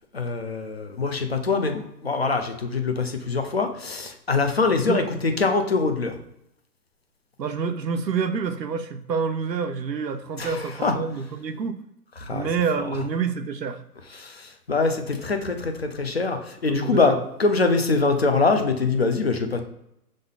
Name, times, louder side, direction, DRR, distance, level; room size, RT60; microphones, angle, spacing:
voice 1, 0.1-6.1 10.4-10.9 12.2-12.5 12.8-12.9 14.2-17.1 17.4-19.6, left 4 dB, 40° left, 0.8 m, -24 dB
voice 2, 7.4-11.8 12.3-13.8 16.7-17.2, right 5 dB, 85° right, 1.0 m, -27 dB
6.3 x 3.9 x 3.9 m
hypercardioid pair, 175°, 49 cm